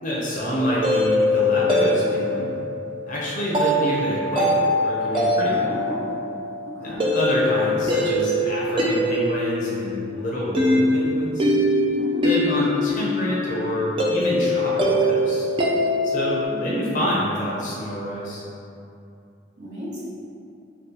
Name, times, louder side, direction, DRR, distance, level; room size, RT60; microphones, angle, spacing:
voice 1, 0.0-2.5 3.1-5.7 6.8-11.4 12.2-15.5 16.0-18.4, equal, 45° left, -6 dB, 0.5 m, -27 dB
sound 1, 0.6-16.4, left 1 dB, 30° right, 0.3 m, -23 dB
voice 2, 5.6-6.1 6.6-7.1 12.0-12.3 16.5-17.2 19.6-20.0, equal, 65° right, -8 dB, 0.9 m, -34 dB
2.8 x 2.3 x 3.7 m, 2.6 s
head